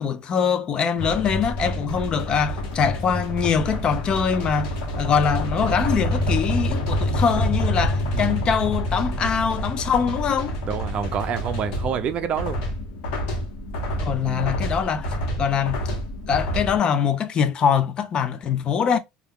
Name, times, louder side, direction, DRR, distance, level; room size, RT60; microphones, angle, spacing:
voice 1, 0.0-10.6 14.0-15.1 15.4-15.8 16.3-19.0, left 7 dB, 35° left, 0.3 m, -23 dB
sound 1, 1.0-16.8, equal, 75° left, 0.9 m, -27 dB
voice 2, 8.1-8.4 10.7-12.6 14.2-14.5, right 8 dB, 45° right, 0.4 m, -28 dB
2.3 x 2.2 x 3.3 m
cardioid pair, 130°, 3 cm